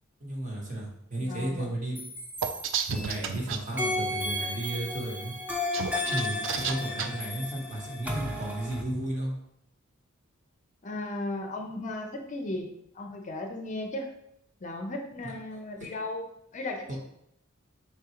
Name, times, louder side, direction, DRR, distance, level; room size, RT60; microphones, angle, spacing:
voice 1, 0.2-2.0 2.9-5.3 6.0-9.3 15.2-15.6 16.9-17.0, right 1 dB, 40° right, -1 dB, 1.0 m, -34 dB
voice 2, 1.3-1.7 10.8-14.1 14.6-16.3 16.5-17.0, left 2 dB, 35° left, 3 dB, 0.5 m, -36 dB
sound 1, 2.0-3.3 3.8-8.8, left 1 dB, 10° right, 0.6 m, -34 dB
sound 2, 2.4-3.6 5.5-7.1, right 7 dB, 65° right, 0.3 m, -31 dB
4.4 x 3.6 x 2.9 m, 0.75 s
head